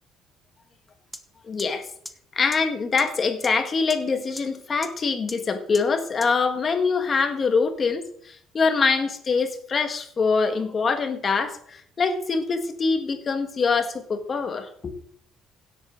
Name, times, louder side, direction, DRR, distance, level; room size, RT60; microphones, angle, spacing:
sound 1, 1.1-1.2 1.6-1.7 2.1-2.2 2.5-2.6 3.0-3.1 3.4-3.5 3.9-4.0 4.4-4.5 4.8-4.9 5.3-5.4 5.7-5.8 6.2-6.3, equal, 5° left, 0.9 m, -35 dB
voice 1, 1.5-1.9 2.3-14.9, left 4 dB, 35° left, 8 dB, 1.6 m, -24 dB
16.5 x 8.3 x 3.9 m, 0.65 s
cardioid pair, 105°, 0 cm